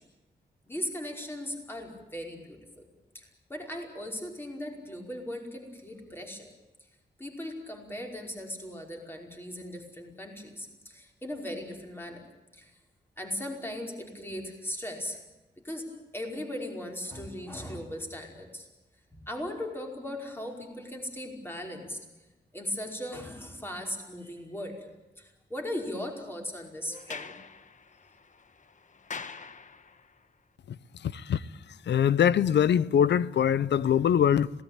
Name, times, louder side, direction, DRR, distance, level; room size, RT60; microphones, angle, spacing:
voice 1, 0.6-2.8 3.1-6.5 7.2-12.3 12.5-12.7 13.2-15.2 15.6-15.9 16.1-18.7 19.1-22.0 22.5-24.9 25.2-27.3, left 1 dB, 15° left, 5.1 m, -38 dB
Sliding door, 26.9-30.2, left 5 dB, 45° left, 1.2 m, -44 dB
voice 2, 31.0-31.4 31.9-34.5, left 9 dB, 90° left, 0.7 m, -23 dB
26.5 x 18.0 x 8.8 m
wide cardioid pair, 135°, 17 cm